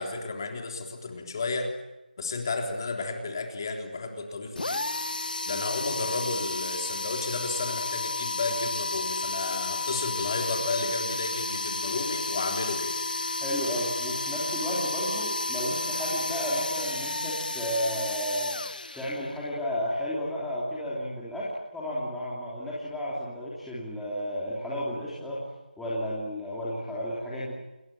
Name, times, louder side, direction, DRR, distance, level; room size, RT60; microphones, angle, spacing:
voice 1, 0.0-1.7 2.2-5.1 5.5-12.9, left 3 dB, 25° left, 3 dB, 3.6 m, -32 dB
sound 1, 4.6-19.4, left 3 dB, 60° left, 2.1 m, -32 dB
voice 2, 13.4-18.5 19.0-25.5 25.8-27.5, equal, ahead, -9 dB, 3.1 m, -32 dB
29.0 x 21.5 x 8.9 m, 1.0 s
figure-of-eight pair, 175°, 5 cm